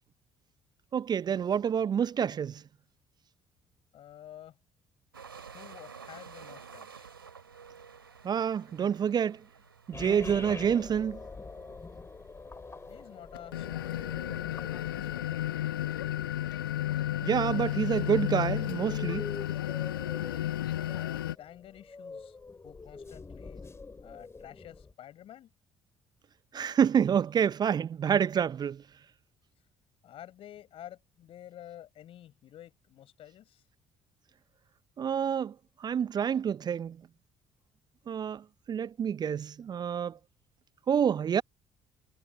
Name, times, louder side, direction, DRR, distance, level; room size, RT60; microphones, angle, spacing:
voice 1, 0.9-2.6 8.2-9.4 9.9-11.2 17.2-19.3 26.5-28.8 35.0-35.5 35.8-37.0 38.1-38.4 38.7-40.2 40.9-41.4, right 8 dB, 35° right, 0.6 m, -28 dB
voice 2, 3.9-4.6 5.5-7.1 12.9-15.9 20.8-22.4 22.6-23.6 24.0-25.5 30.0-33.7, left 11 dB, 50° left, 5.7 m, -50 dB
sound 1, 5.1-17.1, right 6 dB, 85° right, 2.4 m, -53 dB
sound 2, 9.9-24.9, left 4 dB, 25° left, 3.2 m, -46 dB
sound 3, 13.3-21.3, left 13 dB, 75° left, 1.0 m, -32 dB
figure-of-eight pair, 50°, 12 cm